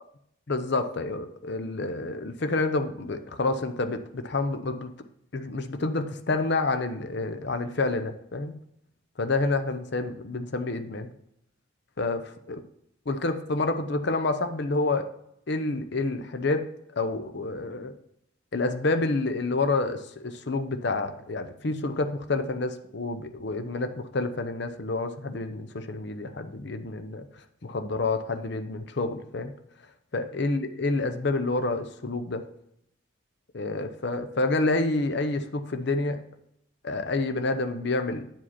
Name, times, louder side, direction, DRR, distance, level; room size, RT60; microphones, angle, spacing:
voice 1, 0.5-4.9 5.3-8.6 9.2-11.1 12.0-12.2 12.5-12.6 13.1-15.1 15.5-16.7 16.9-17.9 18.5-27.2 27.6-29.5 30.1-32.4 33.5-36.2 36.8-38.2, left 3 dB, 55° left, 9 dB, 0.7 m, -28 dB
9.3 x 5.0 x 4.2 m, 0.75 s
head